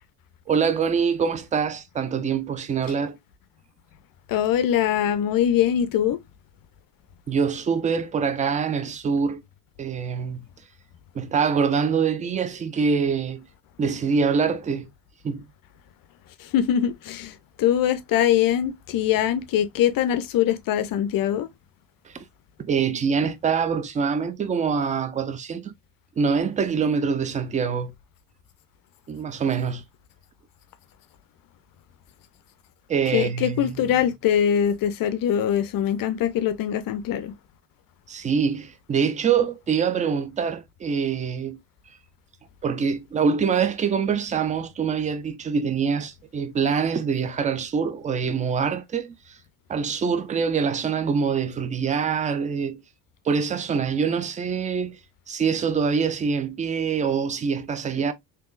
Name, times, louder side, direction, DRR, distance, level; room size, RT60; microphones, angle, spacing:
voice 1, 0.5-3.2 7.3-9.4 9.8-10.4 11.1-13.5 13.8-14.9 15.2-15.5 22.1-22.2 22.6-25.7 26.2-27.9 29.1-29.8 32.9-33.7 38.1-41.6 42.6-49.4 49.7-52.8 53.2-55.0 55.3-58.1, right 6 dB, 15° right, 0.4 m, -24 dB
voice 2, 4.3-6.2 16.4-21.5 33.1-37.3, left 10 dB, 45° left, 0.5 m, -23 dB
3.5 x 2.8 x 2.4 m
hypercardioid pair, 75°, 50 cm